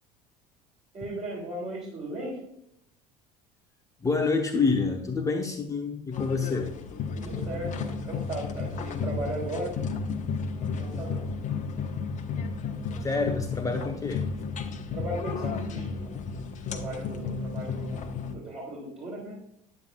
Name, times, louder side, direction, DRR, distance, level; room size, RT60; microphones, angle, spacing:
voice 1, 0.9-2.4 7.2-9.8 10.8-11.4 14.9-16.1 16.7-18.0 18.3-19.4, right 1 dB, 30° right, -4 dB, 2.9 m, -37 dB
voice 2, 4.0-6.8 13.0-14.3 14.6-14.7, left 4 dB, 15° left, 3 dB, 0.8 m, -27 dB
sound 1, 6.1-18.3, left 5 dB, 40° left, 1.0 m, -33 dB
9.5 x 8.6 x 2.3 m, 0.73 s
figure-of-eight pair, 65°, 20 cm